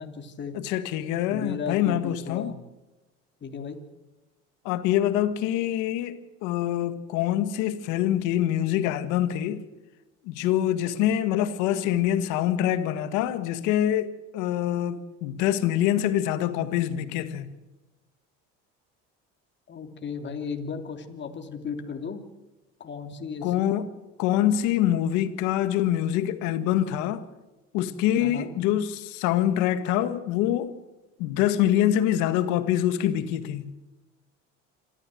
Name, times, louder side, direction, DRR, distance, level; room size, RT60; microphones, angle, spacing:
voice 1, 0.0-0.5 1.3-2.6 3.4-3.8 19.7-22.2 22.8-23.8 28.2-28.5, left 5 dB, 40° left, 3.2 m, -35 dB
voice 2, 0.5-2.5 4.6-9.7 10.2-17.5 23.4-23.9 24.2-27.2 27.7-30.7 31.2-33.7, left 11 dB, 85° left, 1.8 m, -25 dB
27.0 x 14.0 x 7.9 m
supercardioid pair, 95°, 29 cm